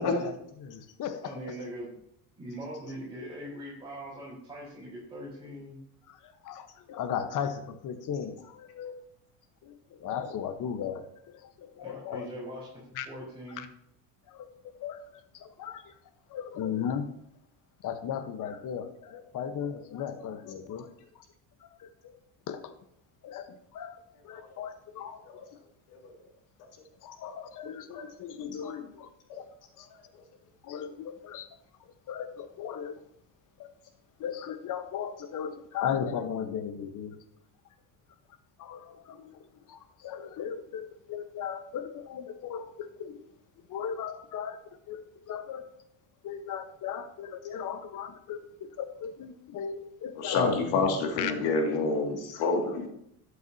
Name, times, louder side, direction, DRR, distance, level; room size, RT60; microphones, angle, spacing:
voice 1, 0.0-1.3 6.1-9.0 9.6-12.3 12.9-13.1 13.6-13.7 14.3-14.5 14.8-15.9 16.3-17.1 17.8-20.9 21.6-22.2 22.5-22.7 23.2-25.6 27.0-29.1 29.3-29.5 29.8-29.9 30.6-31.5 31.8-33.0 33.6-33.7 34.2-37.2 38.6-43.2 43.7-44.6 44.9-45.0 45.3-45.6 46.2-50.6 51.2-51.3 52.3-52.4, left 8 dB, 50° left, 9 dB, 1.1 m, -37 dB
voice 2, 1.2-1.9 2.4-5.8 11.8-13.6, equal, 15° right, -8 dB, 4.2 m, -41 dB
voice 3, 50.2-52.9, left 3 dB, 75° left, 2 dB, 2.3 m, -28 dB
12.0 x 8.4 x 2.8 m, 0.74 s
supercardioid pair, 100°, 40 cm